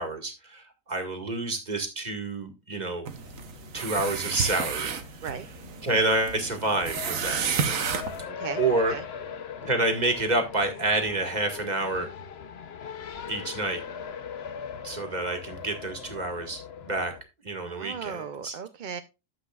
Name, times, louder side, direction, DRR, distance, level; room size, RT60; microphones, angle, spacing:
voice 1, 0.0-3.1 3.7-4.9 5.8-7.4 8.6-8.9 9.6-12.1 13.3-13.8 14.8-17.1 17.4-18.5, right 2 dB, 30° right, 5 dB, 2.0 m, -28 dB
sound 1, 3.1-8.2, right 6 dB, 80° right, 1.5 m, -32 dB
Race car auto racing, 3.2-17.2, left 7 dB, 55° left, 1.0 m, -41 dB
voice 2, 8.3-8.6 8.9-9.0 17.6-19.0, right 7 dB, 50° right, 9 dB, 0.6 m, -36 dB
12.5 x 7.9 x 2.4 m, 0.26 s
omnidirectional pair, 1.4 m